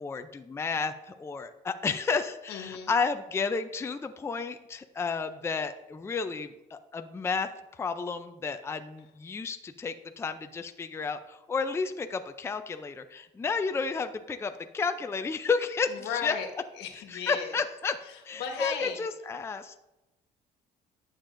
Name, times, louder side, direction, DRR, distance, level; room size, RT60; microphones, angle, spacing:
voice 1, 0.0-16.3 17.1-18.0 18.2-19.8, left 5 dB, 15° left, 8 dB, 0.4 m, -32 dB
voice 2, 2.5-2.9 15.9-16.5 16.8-17.5 18.0-19.0, left 7 dB, 85° left, 3 dB, 1.5 m, -35 dB
11.0 x 7.3 x 2.5 m, 1.0 s
cardioid pair, 110°, 17 cm